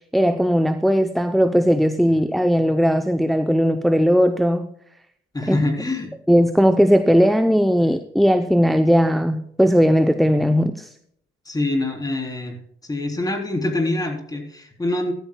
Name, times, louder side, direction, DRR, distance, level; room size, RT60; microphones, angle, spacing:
voice 1, 0.1-4.7 5.5-5.6 6.3-10.9, equal, ahead, 9 dB, 0.6 m, -18 dB
voice 2, 5.3-6.1 11.4-12.6 12.8-15.1, left 2 dB, 20° left, 2 dB, 3.5 m, -25 dB
15.0 x 13.5 x 2.3 m, 0.71 s
cardioid pair, 90°, 20 cm